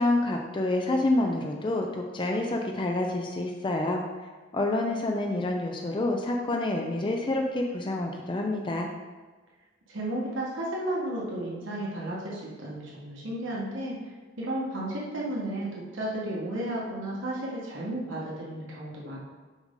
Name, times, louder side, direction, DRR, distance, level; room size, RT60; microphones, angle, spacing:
voice 1, 0.0-4.0 4.5-8.9, left 2 dB, 25° left, 1 dB, 0.4 m, -28 dB
voice 2, 9.9-13.9 14.4-19.2, right 1 dB, 80° right, -5 dB, 1.4 m, -33 dB
6.2 x 5.2 x 3.7 m, 1.3 s
head